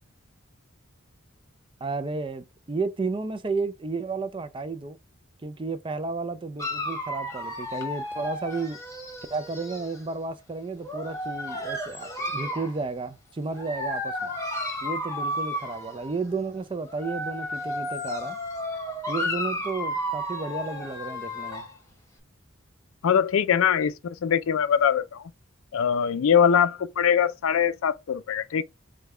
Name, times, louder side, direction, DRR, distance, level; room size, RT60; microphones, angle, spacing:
voice 1, 1.8-5.0 5.4-8.8 9.3-14.3 14.8-18.4 19.1-21.7, right 3 dB, 25° right, 0.4 m, -32 dB
Dog, 6.6-10.0 10.8-12.8 13.5-16.2 16.9-21.8, left 1 dB, 15° left, 1.0 m, -33 dB
voice 2, 23.0-25.2 25.7-28.6, left 7 dB, 70° left, 0.4 m, -22 dB
5.2 x 2.3 x 3.2 m
head